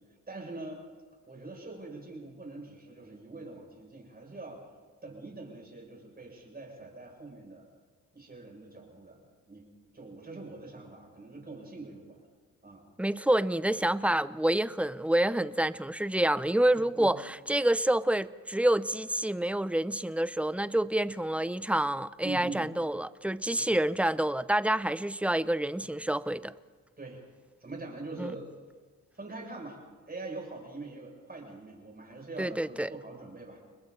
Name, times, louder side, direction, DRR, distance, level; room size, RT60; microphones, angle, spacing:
voice 1, 0.3-0.8 1.3-4.6 5.0-7.7 8.1-9.2 9.5-9.7 9.9-12.2 12.6-12.8 16.7-17.1 22.2-22.7 23.5-23.8 27.0-27.2 27.6-28.5 29.1-29.8 30.1-33.6, right 3 dB, 30° right, 7.3 m, -43 dB
voice 2, 13.0-26.5 28.2-28.3 32.4-32.9, right 1 dB, 5° right, 0.6 m, -28 dB
30.0 x 21.0 x 4.2 m
cardioid pair, 80°, 32 cm